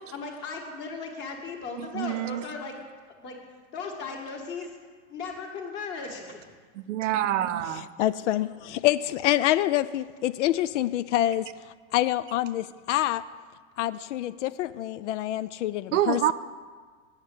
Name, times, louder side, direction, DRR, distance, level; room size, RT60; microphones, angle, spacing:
voice 1, 0.1-2.7 3.2-3.4 3.7-4.7 5.1-6.5, left 4 dB, 30° left, 1.6 m, -37 dB
voice 2, 1.8-2.4 6.7-7.9 15.9-16.3, right 12 dB, 85° right, 0.7 m, -26 dB
voice 3, 7.7-13.2 13.8-16.3, left 13 dB, 75° left, 0.5 m, -27 dB
8.9 x 6.5 x 8.1 m
supercardioid pair, 150°, 36 cm